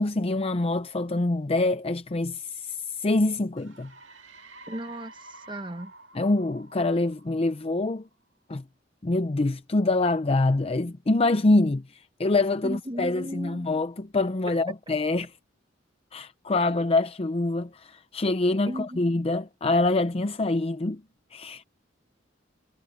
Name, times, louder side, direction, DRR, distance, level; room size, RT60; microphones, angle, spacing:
voice 1, 0.0-3.9 6.1-8.1 8.5-8.6 9.0-15.3 16.1-21.0 21.3-21.6, left 2 dB, 30° left, 0.6 m, -25 dB
sound 1, 3.6-8.1, right 2 dB, 70° right, 2.4 m, -49 dB
voice 2, 4.7-5.9 12.6-13.7 18.7-19.1, equal, 25° right, 1.5 m, -36 dB
head